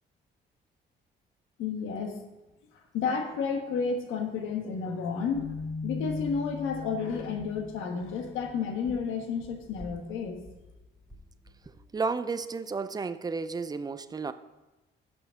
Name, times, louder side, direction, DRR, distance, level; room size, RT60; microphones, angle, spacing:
voice 1, 1.6-2.2 2.9-5.5 5.8-10.4, left 5 dB, 90° left, 1.2 m, -31 dB
sound 1, 5.3-11.9, left 4 dB, ahead, 2.2 m, -40 dB
voice 2, 11.9-14.3, right 4 dB, 20° right, 0.4 m, -32 dB
6.2 x 5.8 x 6.3 m
cardioid pair, 90°, 20 cm